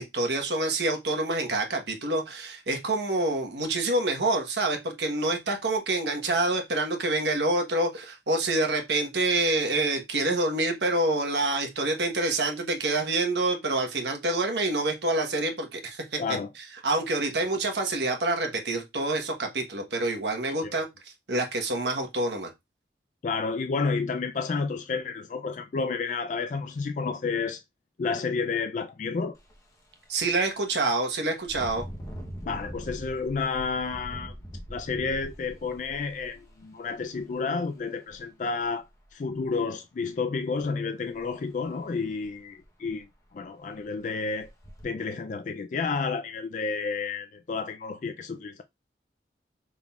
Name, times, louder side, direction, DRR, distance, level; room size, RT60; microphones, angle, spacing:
voice 1, 0.0-16.2 16.8-20.9 21.3-22.5 30.1-31.8, right 2 dB, 70° right, 1.1 m, -27 dB
voice 2, 16.2-16.5 20.5-20.7 23.2-27.6 28.0-29.4 32.4-34.4 34.7-38.8 39.1-43.1 43.3-44.5 44.8-48.6, left 4 dB, 45° left, 0.3 m, -30 dB
Engine, 29.3-29.6 30.0-30.2 31.4-37.2 38.1-38.2 38.6-39.4 41.1-41.3 41.6-41.7 42.2-42.3 42.6-43.1 43.7-43.8 44.4-44.8, equal, 20° left, 0.8 m, -42 dB
5.4 x 3.6 x 2.3 m
head